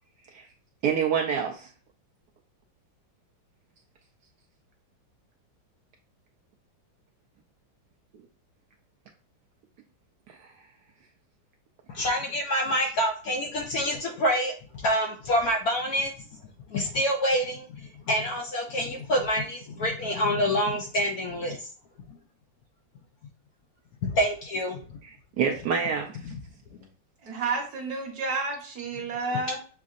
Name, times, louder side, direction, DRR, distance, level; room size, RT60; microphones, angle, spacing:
voice 1, 0.8-1.7 10.3-10.5 25.1-26.3, right 7 dB, 70° right, 1 dB, 1.0 m, -27 dB
voice 2, 11.9-16.1 16.7-21.7 24.0-24.8 26.3-26.4 29.3-29.6, equal, 70° left, 2 dB, 0.9 m, -27 dB
voice 3, 27.2-29.6, right 3 dB, 55° right, 2 dB, 1.4 m, -30 dB
7.2 x 2.5 x 2.4 m, 0.40 s
omnidirectional pair, 2.1 m